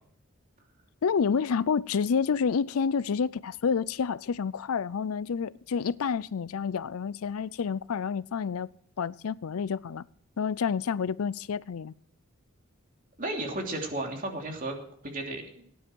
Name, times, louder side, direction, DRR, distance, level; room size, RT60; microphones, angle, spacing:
voice 1, 1.0-8.7 9.0-10.0 10.4-11.9, left 6 dB, 85° left, 0.5 m, -29 dB
voice 2, 13.2-14.8 15.0-15.6, right 2 dB, 40° right, 2.9 m, -33 dB
17.5 x 10.0 x 4.6 m
head